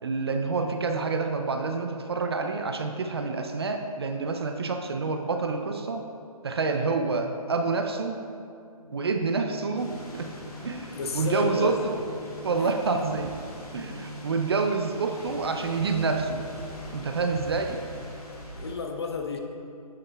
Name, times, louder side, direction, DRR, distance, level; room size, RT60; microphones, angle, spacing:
voice 1, 0.0-6.1 6.4-8.2 8.9-10.3 10.6-12.0 12.4-13.4 13.7-16.5 16.9-17.8, right 4 dB, 40° right, 5 dB, 0.4 m, -28 dB
sound 1, 8.8-18.4, left 2 dB, 20° right, 1.1 m, -45 dB
sound 2, 9.7-18.7, left 1 dB, 75° left, 1.5 m, -43 dB
voice 2, 11.0-11.7 12.6-12.7 18.5-19.4, left 4 dB, 45° left, 3 dB, 0.6 m, -31 dB
7.8 x 7.0 x 2.2 m, 2.4 s
hypercardioid pair, 160°, 19 cm